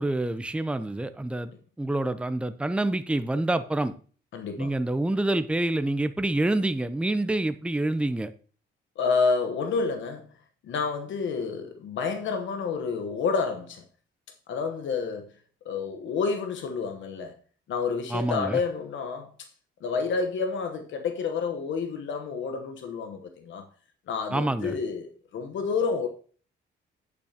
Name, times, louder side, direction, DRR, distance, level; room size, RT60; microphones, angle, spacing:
voice 1, 0.0-1.5 1.8-3.9 4.6-8.3 18.1-18.6 24.3-24.8, right 1 dB, 5° right, 0.6 m, -27 dB
voice 2, 4.3-4.7 9.0-10.2 10.7-13.8 14.5-15.3 15.6-17.3 17.7-19.3 19.8-23.7 24.1-26.1, left 5 dB, 75° left, 1.1 m, -29 dB
8.7 x 8.4 x 2.8 m
cardioid pair, 90°, 20 cm